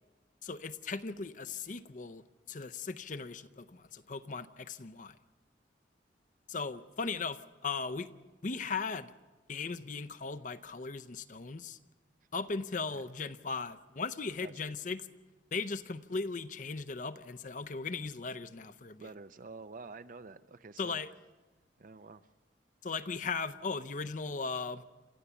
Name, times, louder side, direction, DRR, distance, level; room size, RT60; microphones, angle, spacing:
voice 1, 0.4-5.2 6.5-9.1 9.5-11.8 12.3-15.1 15.5-19.1 20.8-21.1 22.8-24.8, left 4 dB, 45° left, 0.6 m, -38 dB
voice 2, 19.0-21.0 21.8-22.3, right 3 dB, 50° right, 0.6 m, -48 dB
28.0 x 13.5 x 7.0 m
head